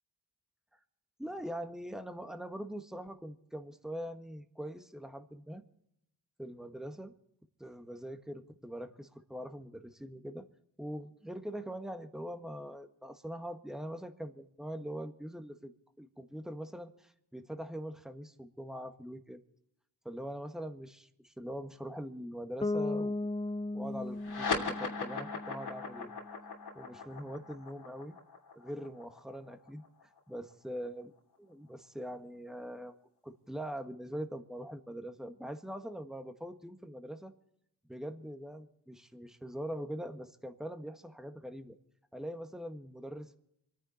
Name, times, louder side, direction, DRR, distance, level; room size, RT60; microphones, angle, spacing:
voice 1, 1.2-5.6 6.4-7.1 7.6-10.5 10.8-15.7 16.0-19.4 20.0-23.2 23.7-26.1 26.7-28.2 28.5-31.1 31.4-33.0 33.2-37.3 37.9-41.7 42.1-43.4, equal, ahead, 7 dB, 1.6 m, -42 dB
Bass guitar, 22.6-26.5, left 2 dB, 15° left, 0.6 m, -37 dB
sound 1, 24.2-31.0, left 4 dB, 75° left, 3.0 m, -39 dB
26.0 x 10.0 x 4.3 m, 0.80 s
cardioid pair, 55°, 39 cm